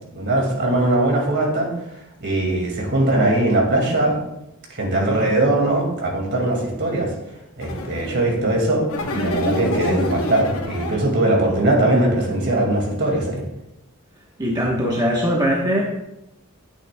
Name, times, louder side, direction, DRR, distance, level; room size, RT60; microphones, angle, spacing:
voice 1, 0.1-1.7 2.2-4.2 4.7-7.1 7.6-8.9 9.1-13.4, right 2 dB, 55° right, 0 dB, 2.2 m, -20 dB
sound 1, 7.6-8.3 8.9-11.2, left 1 dB, 70° left, 1.0 m, -26 dB
voice 2, 14.4-15.8, equal, 20° right, -3 dB, 1.1 m, -20 dB
10.0 x 8.4 x 2.3 m, 0.87 s
head